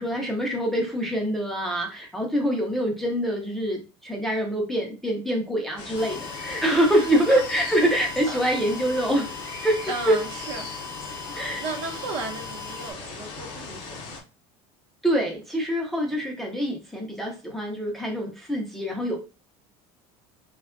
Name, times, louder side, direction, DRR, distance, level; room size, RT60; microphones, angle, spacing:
voice 1, 0.0-9.3 9.6-9.8 10.1-10.2 11.3-11.6 15.0-19.2, equal, ahead, 0.4 m, -25 dB
sound 1, 5.8-14.2, left 4 dB, 40° left, 0.7 m, -38 dB
sound 2, 5.9-12.9, left 4 dB, 35° right, 0.8 m, -40 dB
voice 2, 6.9-7.4 8.3-8.5 9.9-10.7 11.4-14.2, right 4 dB, 60° right, 0.7 m, -35 dB
3.4 x 2.1 x 2.3 m
cardioid pair, 165°, 13 cm